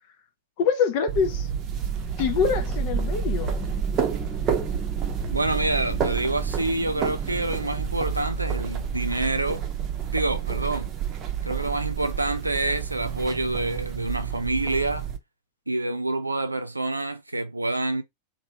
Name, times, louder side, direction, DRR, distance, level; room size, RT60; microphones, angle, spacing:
voice 1, 0.6-1.5 2.2-3.5, left 6 dB, 45° left, 0.8 m, -24 dB
sound 1, 1.1-15.2, right 9 dB, 30° right, 0.7 m, -30 dB
sound 2, 1.6-13.0, right 3 dB, 10° right, 1.0 m, -34 dB
voice 2, 5.3-9.7 10.1-10.9 11.4-15.1 15.7-18.0, right 2 dB, 85° right, 0.6 m, -27 dB
3.2 x 2.6 x 2.9 m
figure-of-eight pair, 90°, 0 cm